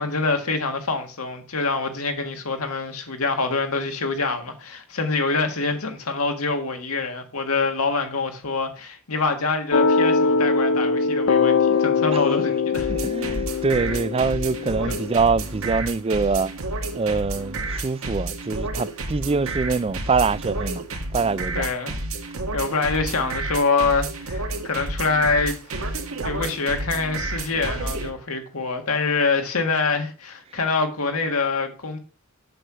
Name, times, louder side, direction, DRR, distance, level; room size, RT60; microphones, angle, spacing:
voice 1, 0.0-12.9 14.9-15.0 21.5-21.9 22.5-25.6 26.2-32.0, left 4 dB, 90° left, 1.7 m, -25 dB
sound 1, 9.7-15.2, left 4 dB, 65° left, 0.6 m, -22 dB
sound 2, 12.7-28.1, right 2 dB, 80° right, 1.7 m, -30 dB
voice 2, 12.9-16.5 16.9-20.8 21.1-21.7, right 4 dB, 25° right, 0.3 m, -24 dB
7.8 x 6.3 x 5.7 m
head